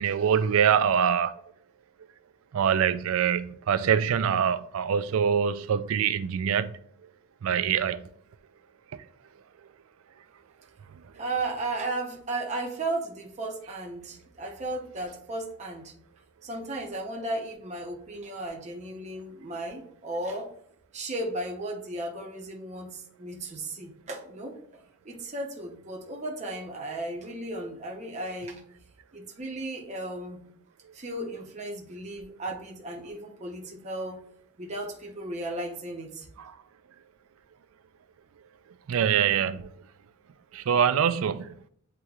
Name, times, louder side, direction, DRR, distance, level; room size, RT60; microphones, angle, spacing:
voice 1, 0.0-1.3 2.5-6.7 7.4-8.0 36.4-36.5 38.9-39.7 40.5-41.5, right 8 dB, 65° right, 0.3 m, -24 dB
voice 2, 11.1-15.9 16.4-20.5 20.9-24.6 25.0-28.6 29.1-30.4 30.9-34.2 34.6-36.3, right 2 dB, 30° right, 0.8 m, -35 dB
7.9 x 2.9 x 2.3 m
head